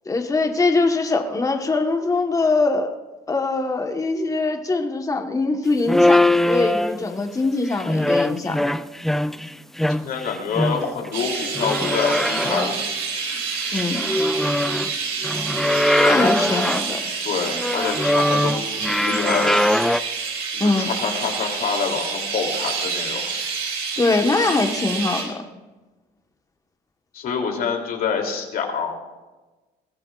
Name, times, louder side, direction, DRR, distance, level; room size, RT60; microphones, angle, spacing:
voice 1, 0.0-2.9 3.3-8.7 13.7-14.0 16.0-17.0 20.6-20.9 24.0-25.4, left 3 dB, 20° left, 4 dB, 1.3 m, -22 dB
sound 1, 5.9-7.2 7.7-9.5 9.8-11.1 11.4-12.8 13.3-14.9 15.2-16.9 17.4-20.0, left 1 dB, ahead, 0.3 m, -21 dB
voice 2, 10.0-12.8 16.0-16.7 17.2-19.6 20.5-23.2 27.1-29.0, left 6 dB, 60° left, 1 dB, 3.0 m, -26 dB
Chirp tweet, 11.1-25.2, right 5 dB, 85° right, 4.6 m, -28 dB
21.5 x 16.0 x 2.4 m, 1.2 s
cardioid pair, 110°, 17 cm